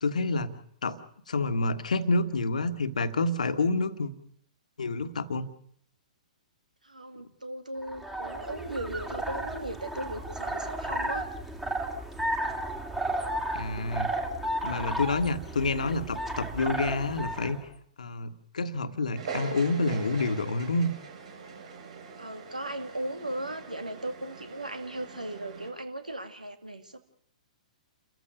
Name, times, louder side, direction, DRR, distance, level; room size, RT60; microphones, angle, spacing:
voice 1, 0.0-0.5 0.8-1.0 1.3-4.1 4.8-5.5 13.5-14.1 14.6-17.6 18.0-20.9, left 2 dB, 70° left, 10 dB, 1.5 m, -28 dB
voice 2, 6.8-11.3 14.7-15.0 22.2-27.0, right 1 dB, 85° right, 8 dB, 2.3 m, -37 dB
sound 1, 7.8-17.6, right 1 dB, 5° right, 2.3 m, -33 dB
sound 2, 19.1-25.7, right 5 dB, 60° right, 7.5 m, -42 dB
29.0 x 14.5 x 6.6 m, 0.63 s
figure-of-eight pair, 115°, 4 cm